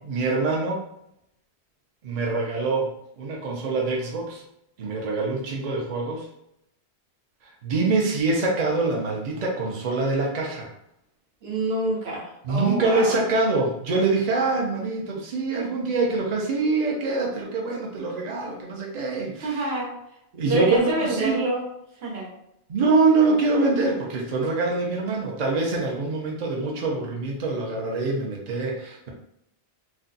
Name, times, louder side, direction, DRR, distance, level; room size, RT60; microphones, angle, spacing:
voice 1, 0.0-0.8 2.0-4.4 4.8-6.3 7.4-10.7 12.4-19.6 20.3-21.4 22.7-29.1, right 3 dB, 45° right, -1 dB, 0.6 m, -24 dB
voice 2, 11.4-13.1 19.4-19.9 20.5-21.7 22.0-22.3, right 2 dB, 70° right, -2 dB, 1.1 m, -27 dB
2.5 x 2.2 x 3.8 m, 0.79 s
omnidirectional pair, 1.1 m